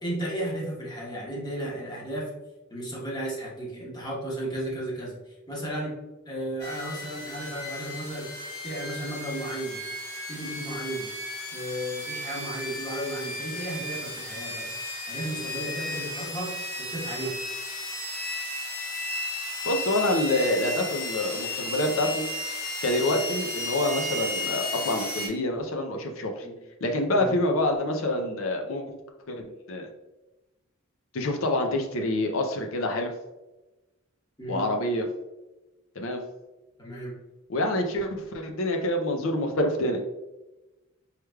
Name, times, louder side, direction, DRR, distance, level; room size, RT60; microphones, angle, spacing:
voice 1, 0.0-2.3 2.7-6.0 6.3-8.3 8.6-9.8 10.3-11.1 11.5-14.8 15.1-17.3 26.4-26.6 27.1-27.4 34.4-34.7 36.8-37.2, right 1 dB, 20° left, -4 dB, 1.1 m, -34 dB
sound 1, 6.6-25.3, left 1 dB, 50° left, 1.2 m, -34 dB
voice 2, 19.6-22.2 22.8-26.5 26.8-28.9 29.3-29.9 31.1-33.1 34.5-35.0 36.0-36.2 37.5-40.0, left 1 dB, 70° left, 4 dB, 0.5 m, -27 dB
4.8 x 3.2 x 2.3 m, 1.0 s
head